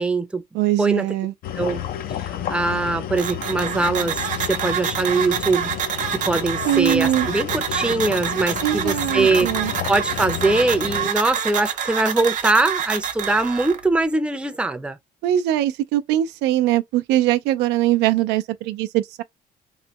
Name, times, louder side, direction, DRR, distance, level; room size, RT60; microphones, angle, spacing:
voice 1, 0.0-0.4 0.8-1.1 1.6-1.8 2.5-5.7 6.1-9.5 9.9-15.0, right 2 dB, 5° right, 0.5 m, -22 dB
voice 2, 0.5-1.3 6.7-7.3 8.6-9.7 15.2-19.2, right 13 dB, 90° right, 0.4 m, -21 dB
sound 1, 1.4-11.1, left 10 dB, 60° left, 0.5 m, -31 dB
sound 2, 3.2-13.8, right 8 dB, 50° right, 0.7 m, -27 dB
3.1 x 2.1 x 2.8 m
cardioid pair, 110°, 17 cm